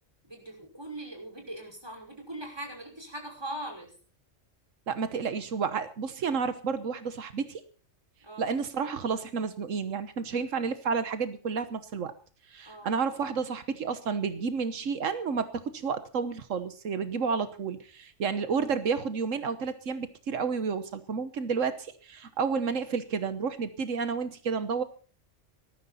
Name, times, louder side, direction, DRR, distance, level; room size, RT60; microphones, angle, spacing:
voice 1, 0.3-3.9 8.2-8.5 12.7-12.9, right 1 dB, 20° right, 2 dB, 5.7 m, -41 dB
voice 2, 4.9-7.6 8.4-12.1 12.5-24.8, right 5 dB, 85° right, 11 dB, 1.5 m, -31 dB
19.0 x 14.0 x 4.2 m, 0.40 s
omnidirectional pair, 1.3 m